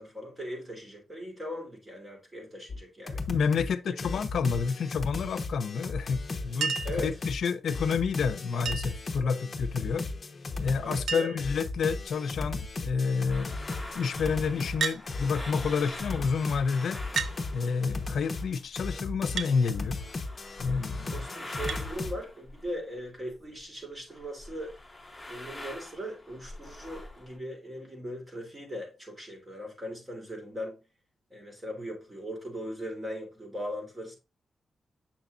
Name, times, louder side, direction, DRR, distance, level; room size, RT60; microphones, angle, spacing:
voice 1, 0.0-3.3 3.9-4.0 6.8-7.1 9.2-9.4 10.8-11.3 21.1-24.7 25.3-30.7 31.3-34.1, equal, 20° right, 3.0 m, -39 dB
sound 1, 2.7-2.8 3.1-3.7 4.0-22.2, left 3 dB, 35° left, 0.9 m, -36 dB
voice 2, 3.3-10.1 10.6-13.6 13.9-17.0 17.5-20.0 20.6-21.3, left 5 dB, 85° left, 0.6 m, -29 dB
Chink clink, 6.6-7.0 8.6-9.1 10.4-10.5 10.7-10.8 11.1-11.5 12.3-12.7 14.8-15.0 16.1-16.2 17.2-17.4 19.4-19.6 21.7-21.9 23.3-23.4, right 6 dB, 75° right, 0.6 m, -32 dB
sound 2, 12.1-18.8 19.0-23.6 23.9-27.4, left 1 dB, 5° left, 1.9 m, -45 dB
7.4 x 6.0 x 2.5 m
wide cardioid pair, 145°, 0 cm